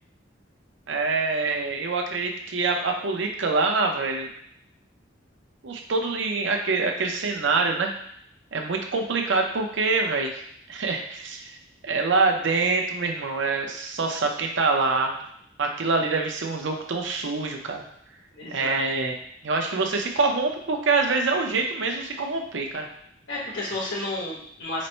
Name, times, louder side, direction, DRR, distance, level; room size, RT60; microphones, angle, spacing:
voice 1, 0.9-4.3 5.6-7.9 8.5-10.3 10.7-11.6 11.8-15.2 15.6-17.9 18.5-19.1 19.4-22.9, right 3 dB, 80° right, 2 dB, 0.6 m, -25 dB
voice 2, 18.3-18.8 23.3-24.9, left 2 dB, 85° left, -5 dB, 1.4 m, -31 dB
4.1 x 2.1 x 4.3 m, 0.69 s
head